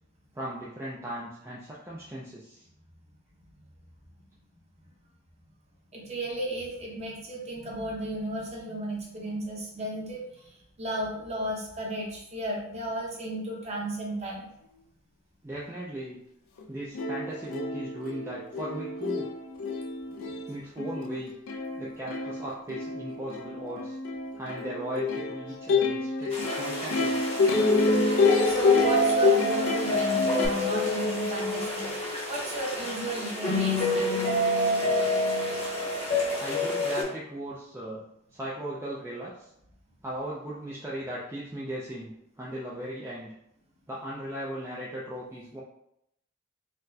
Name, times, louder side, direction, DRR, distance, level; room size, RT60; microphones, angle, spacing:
voice 1, 0.3-2.7 15.4-16.2 16.7-19.3 20.5-21.3 21.8-24.0 24.4-27.2 36.4-38.0 38.3-39.5 40.0-43.3 43.9-45.6, right 1 dB, 10° right, -6 dB, 0.4 m, -37 dB
voice 2, 5.9-10.5 10.8-14.5 20.2-20.3 28.4-34.1, right 1 dB, 30° right, -3 dB, 0.8 m, -34 dB
Plucked string instrument, 16.6-16.7 16.9-30.5, left 4 dB, 80° left, 0.4 m, -28 dB
sound 1, 26.3-37.0, left 1 dB, 30° left, 0.8 m, -27 dB
4.1 x 2.1 x 2.7 m, 0.77 s
head